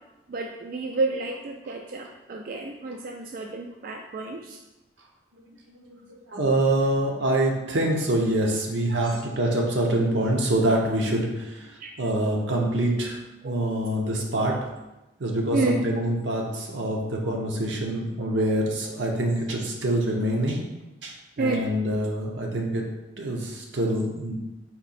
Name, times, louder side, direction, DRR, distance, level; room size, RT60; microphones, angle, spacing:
voice 1, 0.3-4.6 8.9-9.0 11.8-11.9 13.4-13.5 15.5-15.8 18.4-18.5 21.4-21.7, right 3 dB, 50° right, 2 dB, 0.3 m, -30 dB
voice 2, 5.7-11.7 12.0-13.2 13.4-14.6 15.2-20.6 21.0-22.8 23.2-24.3, right 1 dB, 80° right, 0 dB, 0.8 m, -25 dB
4.2 x 2.8 x 4.2 m, 1.0 s
head